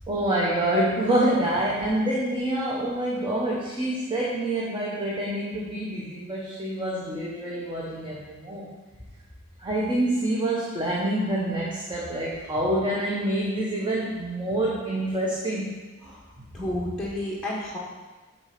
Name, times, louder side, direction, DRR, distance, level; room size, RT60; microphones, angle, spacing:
voice 1, 0.1-8.7 9.6-15.8 16.4-16.5, right 1 dB, 20° right, -4 dB, 0.9 m, -26 dB
voice 2, 16.5-17.8, left 1 dB, ahead, -6 dB, 1.0 m, -31 dB
7.2 x 4.1 x 6.6 m, 1.2 s
head